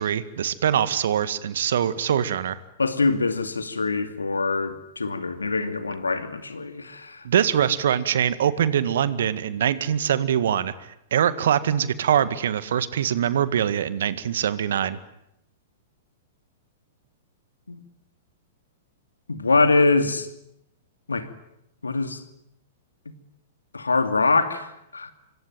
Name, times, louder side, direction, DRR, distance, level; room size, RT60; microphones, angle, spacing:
voice 1, 0.0-2.6 7.2-10.7 11.1-15.0, right 9 dB, 60° right, 14 dB, 1.8 m, -23 dB
voice 2, 2.8-7.2 17.7-17.8 19.3-20.3 21.1-21.3 21.8-22.2 23.7-25.1, left 3 dB, 80° left, 9 dB, 2.6 m, -24 dB
26.0 x 24.0 x 9.3 m, 0.82 s
figure-of-eight pair, 105°, 0 cm